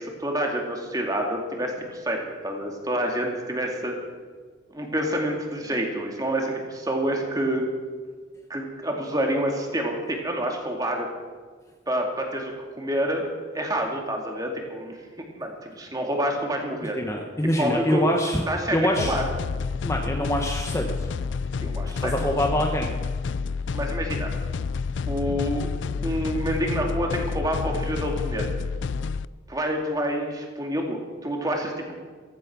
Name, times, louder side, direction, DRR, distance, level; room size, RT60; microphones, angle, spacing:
voice 1, 0.0-4.0 4.7-7.7 8.5-11.1 11.9-15.0 15.4-17.0 17.6-18.1 18.5-19.2 21.6-22.1 23.7-24.3 25.1-25.7 26.0-28.5 29.5-31.9, equal, 20° right, 1 dB, 2.3 m, -28 dB
voice 2, 16.9-18.4 18.7-19.2 19.8-21.1 22.0-22.9 25.3-25.4, equal, 15° left, 2 dB, 1.0 m, -25 dB
sound 1, 19.0-29.3, left 5 dB, 65° left, 0.4 m, -29 dB
15.0 x 15.0 x 6.1 m, 1.5 s
head